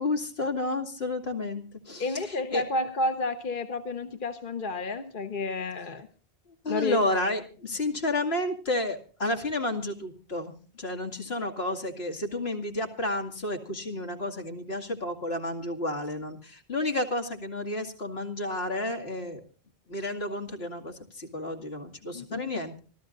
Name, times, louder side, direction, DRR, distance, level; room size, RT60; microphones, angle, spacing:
voice 1, 0.0-2.6 6.6-19.4 19.9-22.8, left 2 dB, 80° left, 4 dB, 2.7 m, -31 dB
voice 2, 2.0-6.1 6.7-7.0 22.1-22.4, left 2 dB, 55° left, 8 dB, 1.3 m, -31 dB
26.0 x 14.5 x 2.6 m, 0.39 s
omnidirectional pair, 1.0 m